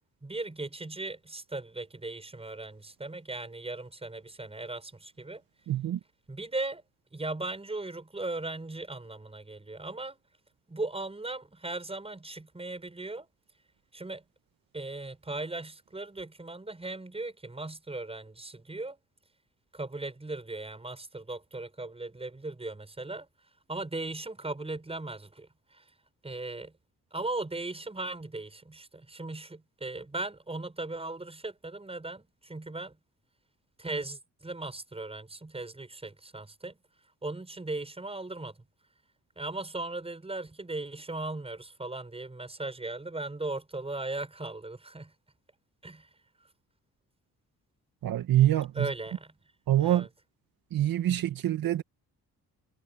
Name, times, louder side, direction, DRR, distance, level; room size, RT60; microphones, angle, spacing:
voice 1, 0.2-5.4 6.3-6.8 7.1-10.2 10.7-13.3 13.9-14.2 14.7-19.0 19.7-23.3 23.7-25.8 26.2-26.7 27.1-33.0 33.8-36.8 37.2-38.6 39.3-45.1 45.8-46.1 48.7-49.3 49.7-50.1 51.1-51.2, right 2 dB, 15° right, 6.7 m, -38 dB
voice 2, 5.7-6.0 48.0-48.9 49.7-50.1 50.7-51.8, right 12 dB, 75° right, 1.9 m, -25 dB
cardioid pair, 110°, 35 cm